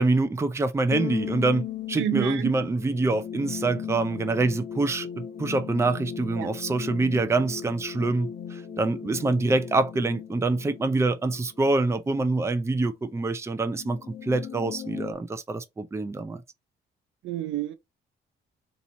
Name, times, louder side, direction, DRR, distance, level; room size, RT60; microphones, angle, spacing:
voice 1, 0.0-16.4, right 3 dB, 15° right, 0.5 m, -26 dB
Bass guitar, 0.9-4.0, left 13 dB, 70° left, 0.5 m, -36 dB
sound 1, 0.9-12.4 12.7-12.8 13.7-15.1, left 7 dB, 50° left, 1.1 m, -39 dB
voice 2, 2.0-2.5 6.4-6.5 17.2-17.7, right 13 dB, 75° right, 0.7 m, -28 dB
2.9 x 2.7 x 3.9 m
cardioid pair, 90°, 20 cm